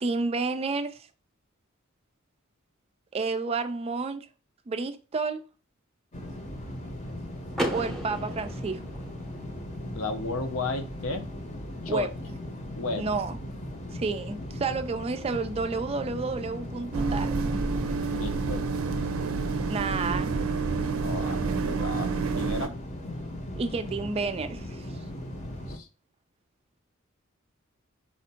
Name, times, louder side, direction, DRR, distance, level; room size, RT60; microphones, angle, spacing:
voice 1, 0.0-1.1 3.1-4.3 4.7-5.4 7.7-8.8 11.9-12.1 13.0-13.4 13.9-17.4 19.7-20.3 23.6-24.9, right 4 dB, 30° right, 0.3 m, -30 dB
sound 1, 6.1-25.8, left 1 dB, 35° left, 0.8 m, -38 dB
Car / Door, 7.5-9.5, equal, ahead, 0.7 m, -33 dB
voice 2, 9.9-11.2 11.8-12.1 12.7-13.0 18.1-18.7 21.0-22.7 25.7-25.9, left 2 dB, 75° left, 0.7 m, -33 dB
sound 2, 16.9-22.7, right 4 dB, 85° right, 0.5 m, -29 dB
4.2 x 2.5 x 4.3 m
head